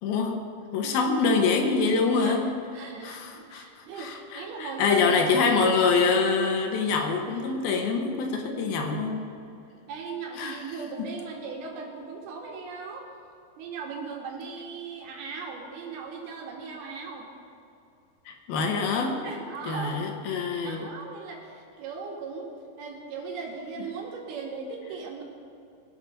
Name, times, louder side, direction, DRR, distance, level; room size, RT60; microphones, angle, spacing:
voice 1, 0.0-0.4 0.7-2.5 3.0-9.2 10.4-10.6 18.3-19.2 19.7-20.8, left 4 dB, 75° left, 3 dB, 3.1 m, -25 dB
voice 2, 2.7-5.1 9.9-13.1 13.6-17.3 19.0-20.1 20.6-22.5 22.8-25.2, right 5 dB, 75° right, 0 dB, 3.8 m, -38 dB
24.0 x 8.0 x 5.7 m, 2.5 s
omnidirectional pair, 4.5 m